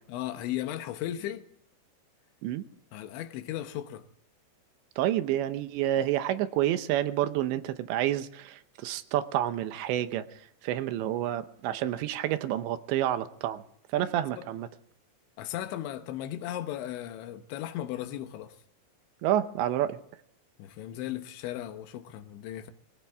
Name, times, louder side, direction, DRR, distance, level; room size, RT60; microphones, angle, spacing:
voice 1, 0.1-1.5 2.9-4.1 14.0-14.1 14.4-14.5 15.4-18.6 20.6-22.7, left 12 dB, 80° left, 3.4 m, -36 dB
voice 2, 5.0-13.6 13.9-14.7 19.2-20.0, right 12 dB, 80° right, 3.0 m, -29 dB
22.5 x 17.5 x 3.6 m
omnidirectional pair, 5.3 m